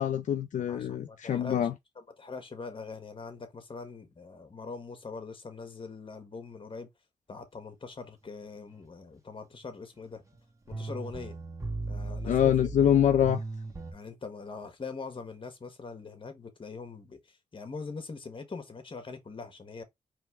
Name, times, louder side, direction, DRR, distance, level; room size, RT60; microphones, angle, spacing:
voice 1, 0.0-1.7 12.3-13.4, left 10 dB, 75° left, 0.5 m, -25 dB
voice 2, 0.7-1.7 1.9-6.9 7.3-10.2 10.7-11.3 11.9-12.7 13.9-19.8, left 4 dB, 40° left, 1.4 m, -42 dB
sound 1, 10.4-10.5 10.7-13.9, right 3 dB, 25° right, 1.4 m, -37 dB
4.5 x 3.3 x 3.4 m
cardioid pair, 65°, 13 cm